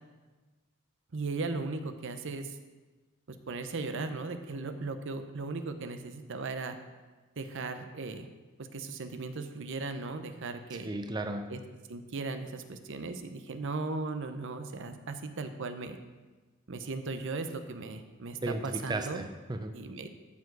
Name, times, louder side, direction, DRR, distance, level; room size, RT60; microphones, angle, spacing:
voice 1, 1.1-2.6 3.5-6.8 7.4-8.3 8.6-10.9 11.5-11.6 11.9-16.0 16.7-19.3 19.7-20.1, right 3 dB, 65° right, 8 dB, 0.7 m, -37 dB
voice 2, 10.7-11.5 18.4-19.7, right 2 dB, 20° right, 6 dB, 0.5 m, -35 dB
14.0 x 4.8 x 4.7 m, 1.3 s
head